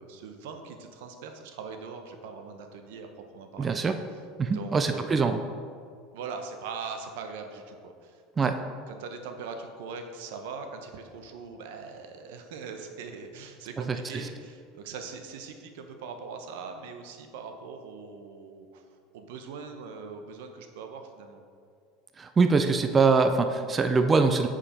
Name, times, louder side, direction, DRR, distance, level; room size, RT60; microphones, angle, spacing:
voice 1, 0.0-3.1 3.3-3.8 4.5-5.4 6.1-8.5 8.9-21.4, right 5 dB, 80° right, 6 dB, 0.8 m, -41 dB
voice 2, 3.6-3.9 4.4-5.4 8.4-8.5 13.9-14.0 22.2-24.5, right 4 dB, 20° right, 7 dB, 0.4 m, -23 dB
8.8 x 5.0 x 4.3 m, 2.2 s
supercardioid pair, 130°, 0 cm